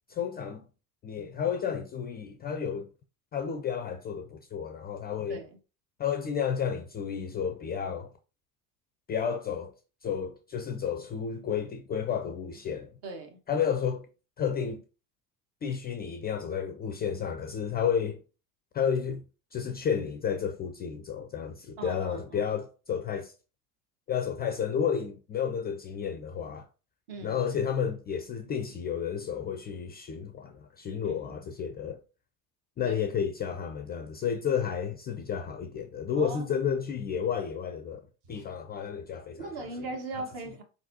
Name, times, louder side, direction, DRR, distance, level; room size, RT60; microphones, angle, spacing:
voice 1, 0.1-0.7 1.0-2.9 3.3-5.4 6.0-8.1 9.1-9.7 10.0-12.9 13.5-14.1 14.4-14.8 15.6-18.2 18.7-19.2 19.5-23.3 24.1-26.7 27.2-32.0 32.8-38.0 38.3-39.4, left 7 dB, 20° left, 0.3 m, -31 dB
voice 2, 13.0-13.4 21.8-22.5 27.1-27.4 31.0-31.4 32.8-33.0 36.2-36.5 38.3-38.4 39.4-40.6, right 3 dB, 55° right, 1.5 m, -39 dB
4.5 x 3.9 x 2.7 m
hypercardioid pair, 70°, 48 cm